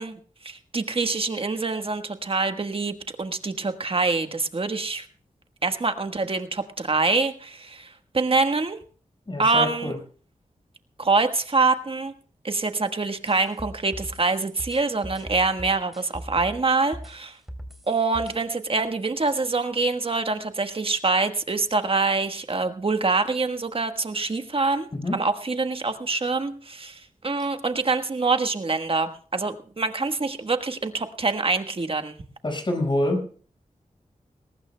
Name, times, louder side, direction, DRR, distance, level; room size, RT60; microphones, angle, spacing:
voice 1, 0.0-5.1 5.6-8.8 9.4-9.9 11.0-12.1 12.4-17.4 17.9-32.2, right 3 dB, 45° right, 8 dB, 1.4 m, -25 dB
voice 2, 9.3-10.0 24.9-25.2 32.4-33.2, left 1 dB, 35° left, 4 dB, 5.4 m, -26 dB
sound 1, 13.3-16.6 16.9-18.4, equal, ahead, 3.0 m, -39 dB
22.0 x 18.5 x 2.2 m, 0.42 s
wide cardioid pair, 70°, 13 cm